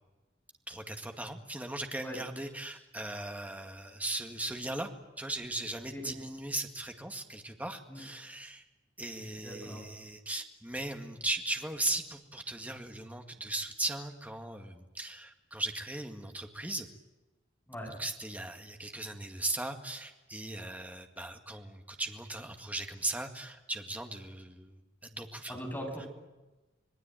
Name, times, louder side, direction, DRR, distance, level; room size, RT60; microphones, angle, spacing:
voice 1, 0.7-4.9 5.2-8.6 9.0-16.9 17.9-25.6 26.0-26.1, right 2 dB, 10° right, 4 dB, 2.0 m, -38 dB
voice 2, 9.4-9.8 17.7-18.0 25.5-26.1, equal, 10° left, 2 dB, 7.2 m, -40 dB
26.5 x 19.5 x 9.2 m, 1.1 s
head